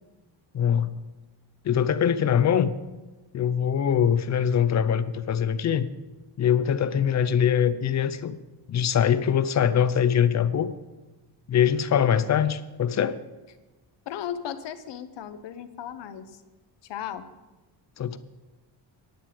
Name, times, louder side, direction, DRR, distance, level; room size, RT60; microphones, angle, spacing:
voice 1, 0.5-1.0 1.6-2.8 3.3-5.9 6.4-8.4 8.7-10.7 11.5-13.2 18.0-18.2, left 8 dB, 40° left, 14 dB, 0.5 m, -23 dB
voice 2, 14.1-16.4 16.8-17.2, left 9 dB, 75° left, 10 dB, 1.0 m, -36 dB
10.0 x 9.2 x 5.1 m, 1.1 s
cardioid pair, 155°, 43 cm